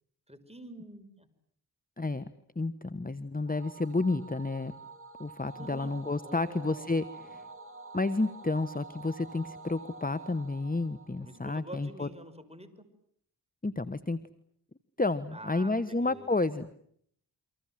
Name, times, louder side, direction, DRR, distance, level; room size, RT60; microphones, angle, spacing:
voice 1, 0.3-1.3 5.6-5.9 6.2-6.9 11.2-12.7 15.3-16.3, right 1 dB, 15° right, 9 dB, 5.9 m, -47 dB
voice 2, 2.6-4.7 5.2-7.4 7.9-12.1 13.6-14.2 15.0-16.7, left 3 dB, 20° left, 13 dB, 1.2 m, -31 dB
sound 1, 3.5-12.1, right 3 dB, 30° right, 3.0 m, -48 dB
29.5 x 25.0 x 7.6 m, 0.67 s
cardioid pair, 45°, 41 cm